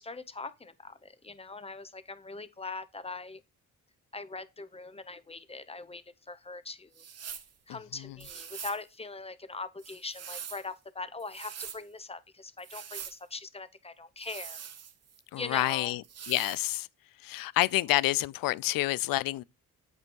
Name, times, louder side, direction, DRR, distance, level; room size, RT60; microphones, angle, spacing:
voice 1, 0.0-3.4 4.1-7.0 7.7-14.6 15.4-16.0, left 3 dB, 20° left, 0.8 m, -41 dB
sound 1, 6.9-7.5 8.2-8.8 9.8-10.7 11.2-11.8 12.6-13.2 14.2-15.2 16.0-16.6, right 8 dB, 50° right, 1.0 m, -43 dB
voice 2, 15.3-16.9 17.2-19.4, left 17 dB, 85° left, 0.5 m, -28 dB
8.2 x 5.4 x 2.9 m
cardioid pair, 100°, 33 cm